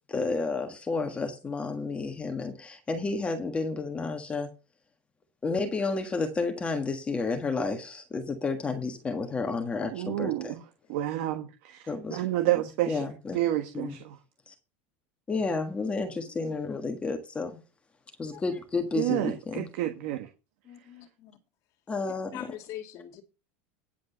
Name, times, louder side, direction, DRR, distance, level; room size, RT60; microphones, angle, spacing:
voice 1, 0.1-4.5 5.4-10.6 11.9-12.3 12.9-13.4 13.7-14.0 14.5-14.6 15.3-17.6 18.2-19.7 21.9-22.5, left 4 dB, 15° left, 1.5 m, -31 dB
voice 2, 9.9-10.6 10.9-11.8 12.1-13.1 13.3-14.2 19.0-20.3, right 14 dB, 70° right, 1.4 m, -29 dB
voice 3, 20.6-21.3 22.3-23.2, left 12 dB, 50° left, 2.4 m, -43 dB
10.0 x 5.1 x 6.7 m
supercardioid pair, 140°, 7 cm